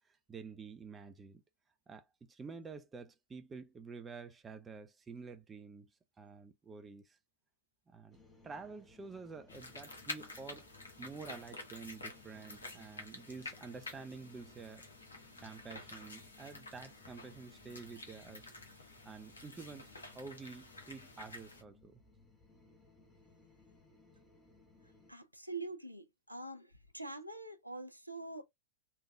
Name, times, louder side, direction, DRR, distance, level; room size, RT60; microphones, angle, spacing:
voice 1, 0.3-1.4 1.9-5.9 6.2-7.2 7.9-8.2 8.4-10.7 11.0-14.8 15.4-18.5 19.0-22.0, right 4 dB, 15° right, 0.4 m, -49 dB
sound 1, 8.1-25.1, left 3 dB, 15° left, 0.8 m, -64 dB
sound 2, 9.5-21.6, left 2 dB, 75° left, 0.9 m, -50 dB
voice 2, 25.1-28.4, right 2 dB, 90° right, 0.4 m, -45 dB
3.3 x 2.2 x 2.4 m
figure-of-eight pair, 90°, 0 cm